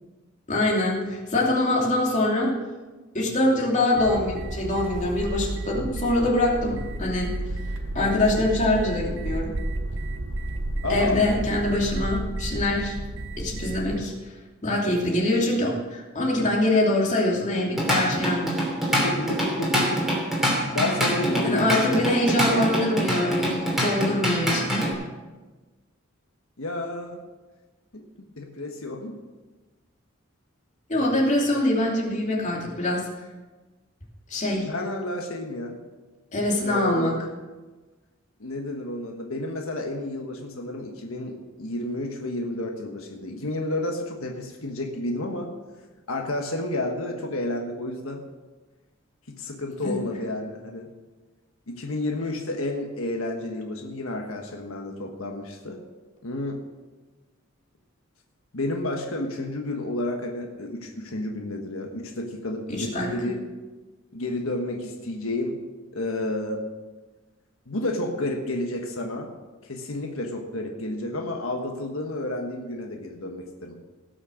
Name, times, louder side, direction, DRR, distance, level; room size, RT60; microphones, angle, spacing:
voice 1, 0.5-2.5 3.1-7.3 7.9-9.5 10.9-13.0 13.4-14.1 14.6-18.6 21.4-24.8 30.9-33.1 34.3-34.7 36.3-37.2 49.8-50.0 62.7-63.3, left 1 dB, 35° left, -3 dB, 2.8 m, -24 dB
sound 1, 4.0-14.0, right 1 dB, 65° right, 0.9 m, -32 dB
voice 2, 10.8-11.2 19.0-20.0 20.7-22.0 22.4-23.4 26.6-27.2 27.9-28.0 28.4-29.2 34.6-35.8 36.6-37.2 38.4-45.5 46.1-48.2 49.3-50.9 51.8-55.8 56.2-56.6 58.5-63.4 64.1-65.6 65.9-66.6 67.7-69.3 69.6-73.8, left 1 dB, 85° left, 2 dB, 1.4 m, -30 dB
Drum kit / Drum, 17.5-24.9, equal, ahead, 3.0 m, -25 dB
17.5 x 6.5 x 6.4 m, 1.2 s
head